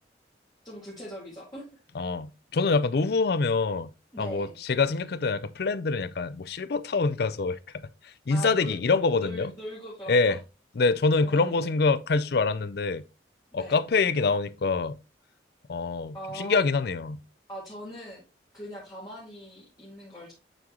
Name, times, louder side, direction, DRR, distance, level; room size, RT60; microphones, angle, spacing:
voice 1, 0.6-1.7 4.1-4.6 8.3-8.8 9.2-10.4 11.2-11.7 13.5-13.8 16.1-16.6 17.5-18.2 18.5-20.3, equal, 20° left, 1.9 m, -40 dB
voice 2, 1.9-3.9 4.2-7.6 8.0-9.5 10.1-10.4 10.8-13.0 13.5-15.0 15.7-17.2, left 4 dB, 55° left, 0.4 m, -25 dB
9.0 x 3.8 x 2.9 m
head